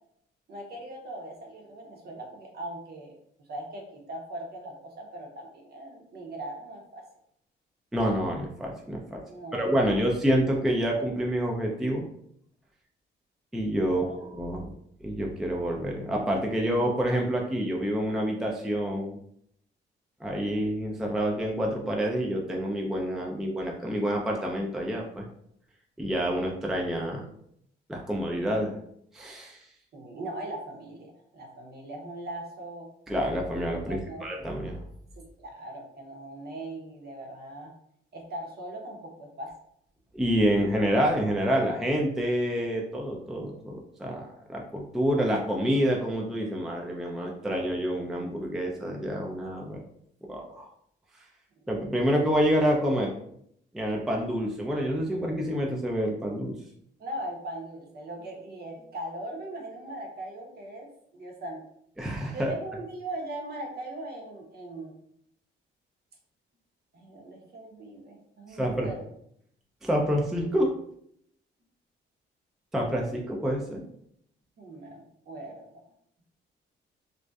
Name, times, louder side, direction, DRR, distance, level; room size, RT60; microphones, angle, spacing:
voice 1, 0.5-7.0 9.3-10.0 13.9-14.3 29.9-32.9 33.9-34.3 35.4-37.7 38.1-39.5 57.0-61.6 62.3-64.9 66.9-69.1 74.6-75.7, right 1 dB, 55° right, 1 dB, 0.7 m, -40 dB
voice 2, 7.9-9.2 9.5-12.1 13.5-14.6 15.0-19.2 20.2-25.2 26.0-27.3 27.9-28.8 29.1-29.7 33.1-34.8 40.1-49.8 50.3-50.7 51.7-53.1 53.7-56.6 62.0-62.5 68.6-68.9 69.8-70.7 72.7-73.8, equal, ahead, 0 dB, 0.3 m, -27 dB
2.6 x 2.1 x 2.2 m, 0.71 s
cardioid pair, 90°, 20 cm